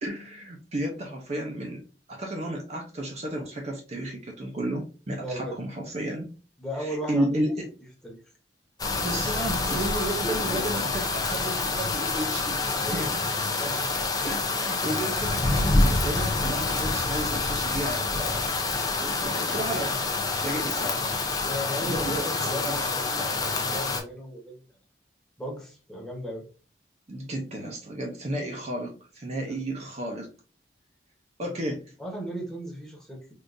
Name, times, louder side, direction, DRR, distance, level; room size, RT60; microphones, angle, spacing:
voice 1, 0.0-1.8 2.1-6.3 6.8-7.7 8.9-12.6 12.9-13.1 14.2-18.4 19.0-20.0 20.4-21.0 21.8-22.3 22.6-22.8 27.1-30.3 31.4-31.9, right 1 dB, 40° right, 1 dB, 0.6 m, -32 dB
voice 2, 5.2-5.6 6.6-7.6 8.0-8.2 9.7-9.8 10.5-10.9 12.8-13.1 13.6-13.9 21.4-24.6 25.4-26.4 29.4-29.6 32.0-33.3, equal, 5° left, -2 dB, 1.0 m, -36 dB
sound 1, 8.8-24.0, left 3 dB, 20° left, 0.5 m, -27 dB
3.6 x 2.5 x 2.5 m, 0.35 s
head